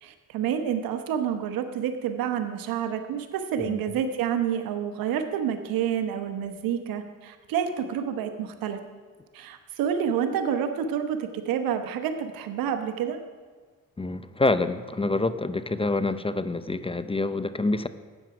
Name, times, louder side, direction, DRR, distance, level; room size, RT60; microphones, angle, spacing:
voice 1, 0.0-8.8 9.3-13.2, right 8 dB, 90° right, 8 dB, 1.0 m, -28 dB
voice 2, 14.0-17.9, left 2 dB, 15° left, 13 dB, 0.6 m, -26 dB
12.5 x 9.0 x 4.9 m, 1.5 s
supercardioid pair, 60°, 34 cm